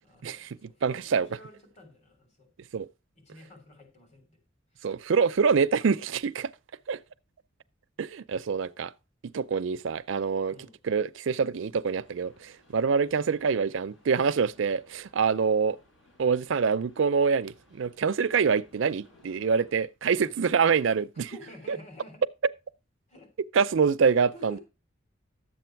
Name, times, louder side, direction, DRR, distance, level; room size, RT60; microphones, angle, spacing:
voice 1, 0.0-2.5 3.1-4.4 4.7-4.9 10.5-10.8 20.2-20.4 21.3-22.2 23.1-23.3 24.3-24.6, left 1 dB, 35° left, 3.3 m, -50 dB
voice 2, 0.8-1.3 2.7-2.9 4.8-6.5 6.9-7.0 8.0-8.9 9.3-10.5 10.9-15.8 16.2-21.3 21.7-21.8 23.5-24.6, right 5 dB, 70° right, 0.5 m, -25 dB
sound 1, 12.0-19.8, left 1 dB, 75° left, 7.6 m, -61 dB
11.0 x 7.7 x 4.5 m
head